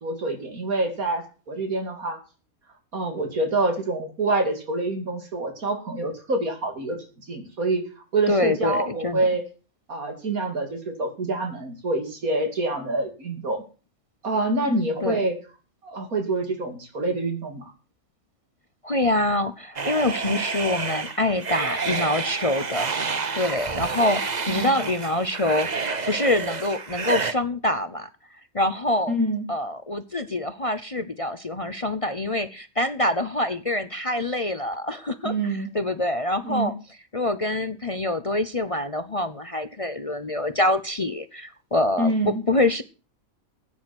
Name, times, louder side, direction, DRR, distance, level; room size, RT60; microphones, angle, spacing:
voice 1, 0.0-2.2 2.9-7.0 7.3-7.8 8.1-9.4 9.9-13.6 14.2-15.3 15.8-17.7 20.2-20.4 24.5-24.7 29.1-29.5 35.2-35.7 36.4-36.7 42.0-42.4, right 2 dB, 85° right, 5 dB, 3.2 m, -26 dB
voice 2, 8.3-9.3 15.0-15.2 18.8-22.9 23.3-28.1 28.5-29.1 29.5-36.7 37.1-42.8, left 1 dB, 30° left, 12 dB, 0.7 m, -25 dB
sound 1, 19.8-27.3, right 5 dB, 35° right, 1.0 m, -29 dB
15.0 x 9.3 x 6.1 m, 0.35 s
omnidirectional pair, 1.5 m